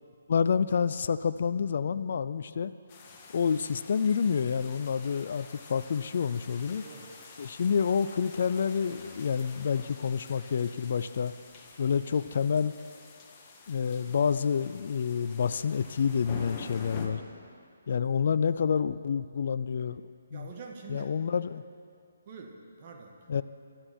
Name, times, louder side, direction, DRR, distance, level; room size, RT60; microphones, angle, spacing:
voice 1, 0.3-2.7 3.3-6.8 7.4-11.3 11.8-12.7 13.7-17.2 17.9-20.0 20.3-20.5 20.9-21.6 23.3-23.4, left 6 dB, 55° left, 13 dB, 0.5 m, -28 dB
sound 1, 2.9-17.1, left 4 dB, 25° left, 2.0 m, -48 dB
voice 2, 6.8-7.1 20.3-21.2 22.3-23.2, right 4 dB, 40° right, 2 dB, 1.8 m, -45 dB
23.5 x 13.0 x 4.5 m, 2.3 s
figure-of-eight pair, 150°, 0 cm